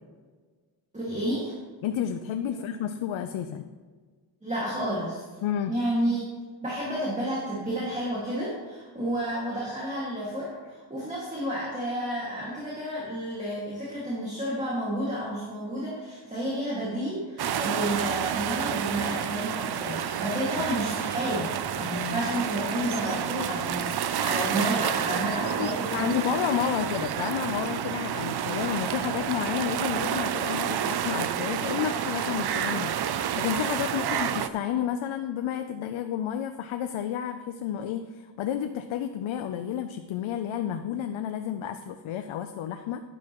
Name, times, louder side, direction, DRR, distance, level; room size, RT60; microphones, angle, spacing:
voice 1, 0.9-1.6 2.5-2.6 4.4-5.2 5.7-6.3 6.6-26.4 34.0-34.2, right 1 dB, 15° right, -6 dB, 2.0 m, -31 dB
voice 2, 1.8-3.7 5.4-5.7 20.3-20.6 25.6-43.0, left 9 dB, 85° left, 7 dB, 0.6 m, -31 dB
sound 1, 17.4-34.5, right 9 dB, 55° right, 0.5 m, -29 dB
11.0 x 10.5 x 3.0 m, 1.5 s
wide cardioid pair, 165°, 47 cm